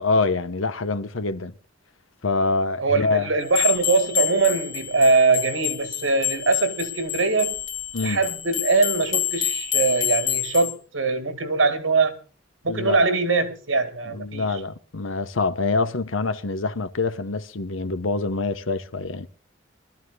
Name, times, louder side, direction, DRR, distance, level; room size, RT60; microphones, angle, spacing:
voice 1, 0.0-1.5 2.2-3.3 7.9-8.2 12.7-13.0 14.1-19.3, left 3 dB, 90° left, 1.0 m, -25 dB
voice 2, 2.8-7.6 8.0-12.2 12.6-14.5, right 3 dB, 80° right, 2.1 m, -22 dB
sound 1, 3.5-10.7, left 14 dB, 65° left, 2.4 m, -28 dB
25.5 x 13.5 x 2.3 m
head